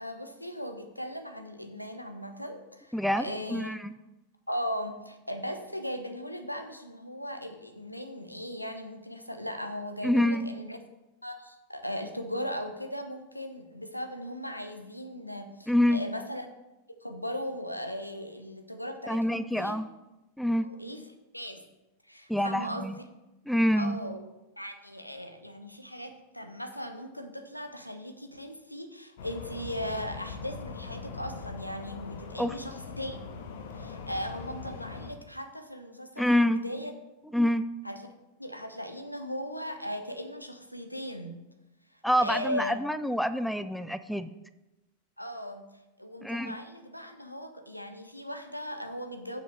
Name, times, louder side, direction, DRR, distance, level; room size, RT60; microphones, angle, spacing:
voice 1, 0.0-3.7 4.5-10.8 11.2-16.5 17.0-19.8 20.6-21.0 21.3-21.6 22.1-23.0 23.8-24.3 24.6-33.2 33.7-36.9 37.8-38.1 38.4-41.4 41.9-42.8 45.2-45.7 46.0-49.4, equal, 90° left, 7 dB, 0.8 m, -38 dB
voice 2, 2.9-4.0 10.0-10.5 15.7-16.0 19.1-19.9 20.4-20.7 22.3-22.9 23.5-24.0 32.4-32.5 36.2-36.6 37.3-37.6 42.0-44.3 46.2-46.5, equal, ahead, 12 dB, 0.4 m, -26 dB
sound 1, 29.2-35.1, left 5 dB, 55° left, 0.9 m, -41 dB
7.6 x 6.1 x 5.3 m, 1.0 s
figure-of-eight pair, 90°, 0 cm